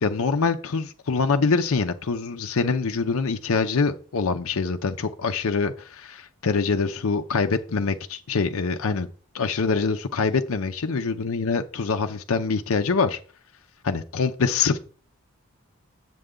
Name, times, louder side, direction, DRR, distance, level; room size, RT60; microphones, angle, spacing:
voice 1, 0.0-9.1 9.3-13.2 13.8-14.8, left 4 dB, 70° left, 6 dB, 0.6 m, -24 dB
7.9 x 7.5 x 3.7 m, 0.39 s
head